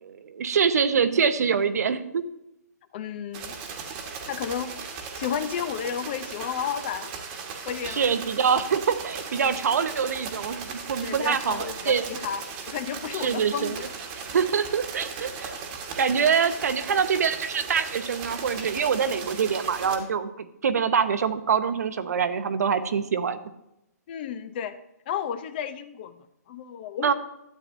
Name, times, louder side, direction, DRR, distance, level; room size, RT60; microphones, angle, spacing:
voice 1, 0.0-2.2 7.8-12.1 13.1-13.9 14.3-15.5 16.0-23.4 27.0-27.1, right 6 dB, 65° right, 11 dB, 0.8 m, -25 dB
voice 2, 2.9-3.6 4.3-4.7 5.1-7.1 7.7-8.0 11.0-13.7 24.1-24.8 25.1-26.2 26.5-27.1, left 8 dB, 35° left, 12 dB, 0.6 m, -32 dB
sound 1, 3.3-20.0, right 5 dB, 25° right, 1.3 m, -37 dB
12.5 x 8.7 x 2.6 m, 0.85 s
hypercardioid pair, 155°, 9 cm